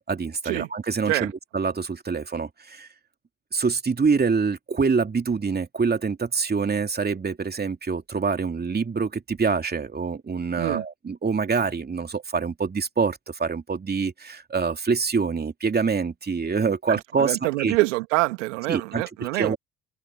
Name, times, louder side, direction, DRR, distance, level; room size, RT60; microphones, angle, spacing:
voice 1, 0.1-2.9 3.5-17.8 18.7-19.0 19.3-19.6, right 5 dB, 25° right, 2.8 m, -25 dB
voice 2, 16.9-19.6, right 22 dB, 80° right, 1.9 m, -26 dB
hypercardioid pair, 65°, 37 cm